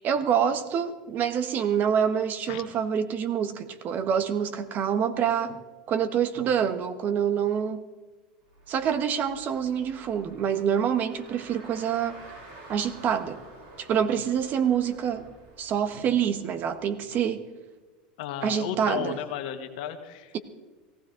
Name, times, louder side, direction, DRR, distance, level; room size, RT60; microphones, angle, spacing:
voice 1, 0.0-5.6 5.9-7.8 8.7-12.2 12.7-13.4 13.8-15.3 15.6-17.4 18.4-19.2, right 8 dB, 45° right, 11 dB, 1.3 m, -26 dB
Car, 8.4-17.0, right 2 dB, 70° right, 5.9 m, -50 dB
voice 2, 18.2-20.3, left 10 dB, 70° left, 7 dB, 1.6 m, -34 dB
18.0 x 16.0 x 3.9 m, 1.2 s
supercardioid pair, 105°, 4 cm